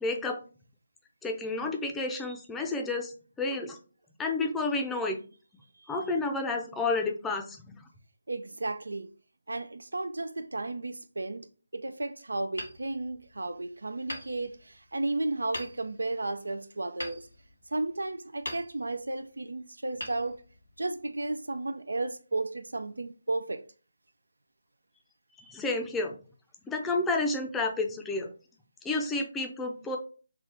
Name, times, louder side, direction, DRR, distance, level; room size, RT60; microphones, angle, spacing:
voice 1, 0.0-0.4 1.2-3.8 4.2-5.2 5.9-7.8 25.4-26.1 26.7-28.3 28.8-30.0, left 3 dB, 5° left, 0.5 m, -30 dB
voice 2, 8.3-9.1 9.5-17.3 17.7-20.4 20.8-23.6, right 2 dB, 90° right, 0.3 m, -33 dB
Hammer, 12.5-13.6 14.1-15.0 15.5-16.1 17.0-18.0 18.4-19.2 20.0-20.9, left 1 dB, 85° left, 1.7 m, -42 dB
3.7 x 2.4 x 4.2 m
figure-of-eight pair, 160°, 0 cm